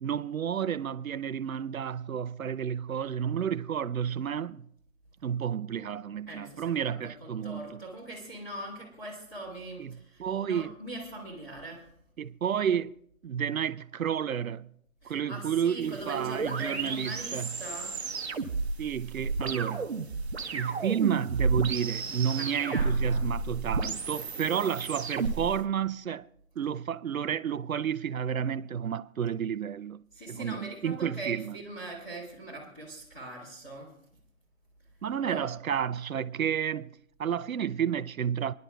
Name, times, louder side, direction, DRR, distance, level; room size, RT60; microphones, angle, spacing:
voice 1, 0.0-4.7 5.2-7.8 9.8-10.7 12.2-12.9 13.2-14.7 15.0-17.5 18.8-19.9 20.5-26.3 26.6-30.0 30.3-31.6 35.0-36.9 37.2-38.5, right 8 dB, 75° right, 0.6 m, -31 dB
voice 2, 6.3-11.8 15.0-18.0 22.3-23.2 24.1-24.6 30.1-33.9 35.2-35.5, right 1 dB, 10° left, 2.1 m, -42 dB
sound 1, 15.8-25.6, right 4 dB, 50° right, 1.0 m, -32 dB
28.5 x 10.5 x 2.3 m
hypercardioid pair, 165°, 42 cm